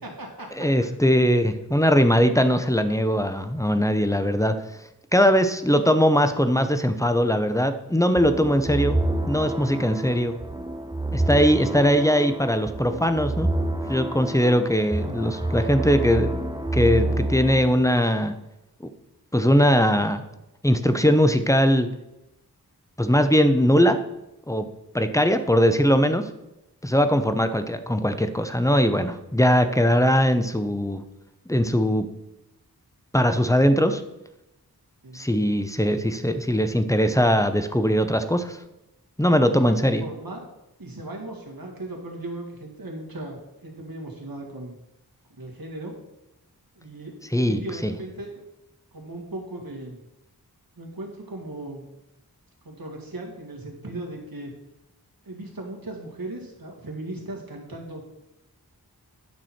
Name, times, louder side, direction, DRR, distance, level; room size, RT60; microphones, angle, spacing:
voice 1, 0.0-0.5 8.7-8.8 11.6-11.7 14.8-15.4 25.1-25.2 35.0-35.3 39.3-40.5 40.8-44.8 45.4-46.0 46.8-48.4 48.9-50.0 50.8-51.8 52.6-54.5 55.2-58.0, right 2 dB, 60° right, 0 dB, 2.2 m, -37 dB
voice 2, 0.6-4.5 5.1-9.0 9.3-10.3 11.1-13.5 13.9-16.3 16.7-18.3 19.3-20.2 20.6-21.9 23.0-24.0 24.5-24.7 24.9-26.3 26.8-31.0 31.5-32.0 33.1-34.0 35.1-38.6 39.2-40.0 47.3-47.6, equal, 10° left, 9 dB, 0.7 m, -20 dB
sound 1, 8.2-17.7, right 1 dB, 10° right, 1.0 m, -28 dB
9.2 x 6.1 x 4.3 m, 0.91 s
wide cardioid pair, 50°, 39 cm